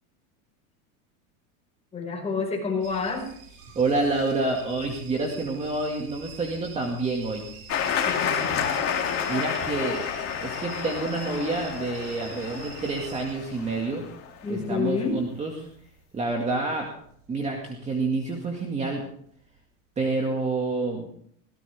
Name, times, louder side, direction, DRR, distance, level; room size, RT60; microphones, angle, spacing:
voice 1, 1.9-3.3 8.1-8.7 14.4-15.2, left 4 dB, 15° left, 0 dB, 5.6 m, -29 dB
sound 1, 2.8-17.7 17.9-18.6 19.1-19.6 20.0-20.1, right 7 dB, 50° right, 5.8 m, -46 dB
voice 2, 3.8-7.4 9.3-10.0 10.4-14.0 14.5-15.7 16.1-16.9 17.3-19.0 20.0-21.0, right 3 dB, 15° right, 1 dB, 2.2 m, -28 dB
sound 2, 7.7-14.3, left 8 dB, 30° left, 2.8 m, -30 dB
20.0 x 17.0 x 3.6 m, 0.64 s
supercardioid pair, 150°, 42 cm